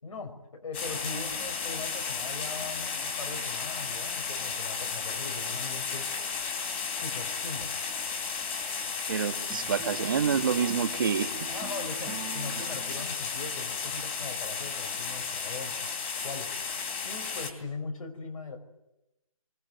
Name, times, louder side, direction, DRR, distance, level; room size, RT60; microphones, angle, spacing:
voice 1, 0.0-6.1 7.0-7.7 11.5-15.9 16.2-16.5 17.0-18.6, left 3 dB, 70° left, 4 dB, 5.2 m, -40 dB
sound 1, 0.7-17.5, left 5 dB, 20° left, 3.3 m, -34 dB
voice 2, 9.1-11.3, right 7 dB, 35° right, 11 dB, 1.4 m, -27 dB
sound 2, 9.5-13.6, right 8 dB, 10° right, 0.9 m, -44 dB
23.5 x 23.0 x 9.2 m, 0.92 s
hypercardioid pair, 170°, 18 cm